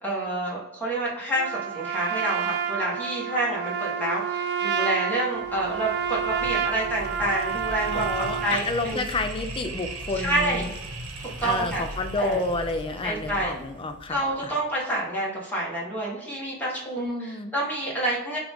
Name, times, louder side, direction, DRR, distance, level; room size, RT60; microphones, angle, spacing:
voice 1, 0.0-9.0 10.1-10.6 11.4-11.8 12.2-12.4 13.0-13.5 14.1-18.4, right 1 dB, 10° left, -5 dB, 1.4 m, -28 dB
Trumpet, 1.3-8.6, right 7 dB, 50° right, 0.4 m, -29 dB
sound 1, 5.4-14.5, right 1 dB, 80° right, 0.9 m, -38 dB
voice 2, 7.9-10.7 11.4-14.6 17.0-17.5, left 2 dB, 25° left, 7 dB, 0.4 m, -30 dB
6.0 x 2.5 x 3.5 m, 0.95 s
head